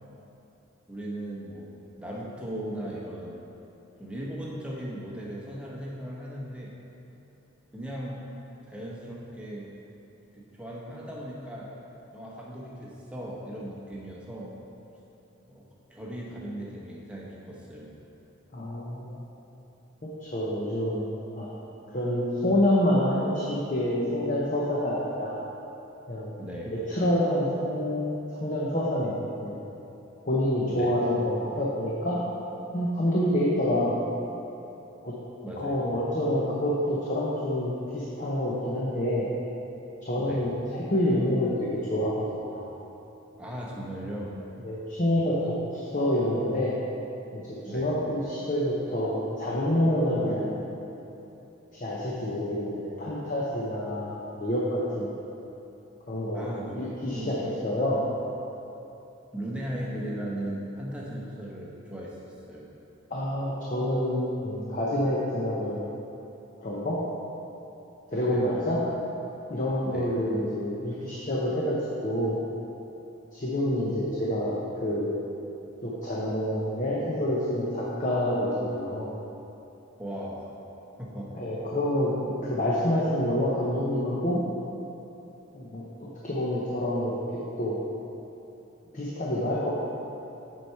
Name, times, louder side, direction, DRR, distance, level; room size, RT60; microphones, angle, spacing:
voice 1, 0.9-3.4 4.0-6.7 7.7-8.2 8.7-9.7 10.3-11.7 12.1-14.5 15.5-17.9 26.4-26.7 30.6-30.9 35.4-35.7 40.2-40.5 43.4-44.4 45.0-45.2 47.6-48.0 56.3-56.7 57.1-57.4 59.3-62.7 68.2-68.5 69.8-70.1 80.0-80.4 81.0-81.3, right 1 dB, 5° right, -4 dB, 0.9 m, -37 dB
voice 2, 18.5-19.2 20.0-21.1 21.3-21.5 21.9-25.3 26.1-26.3 26.7-28.1 28.4-29.5 30.2-32.2 32.7-34.0 35.0-35.1 35.6-39.3 40.0-42.7 44.6-46.7 47.3-50.6 51.7-55.1 56.1-58.0 63.1-65.9 66.6-67.0 68.1-68.8 69.5-72.4 73.3-75.2 75.8-79.1 81.3-84.4 85.5-87.2 87.6-87.8 88.9-89.7, left 1 dB, 35° left, -5 dB, 0.8 m, -27 dB
7.4 x 4.7 x 5.6 m, 2.9 s
head